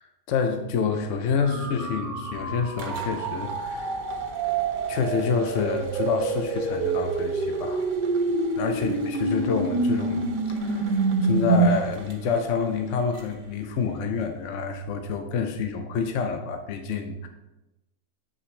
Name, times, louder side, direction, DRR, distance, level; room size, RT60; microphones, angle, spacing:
voice 1, 0.0-4.0 4.9-7.8 8.6-17.3, left 5 dB, 70° left, 5 dB, 0.7 m, -28 dB
sound 1, 1.4-11.7, right 3 dB, 70° right, 1.7 m, -27 dB
sound 2, 1.5-6.0, left 4 dB, 20° left, 1.4 m, -43 dB
sound 3, 2.3-14.8, right 4 dB, 85° right, 1.7 m, -45 dB
8.0 x 5.7 x 3.2 m, 0.96 s
omnidirectional pair, 2.0 m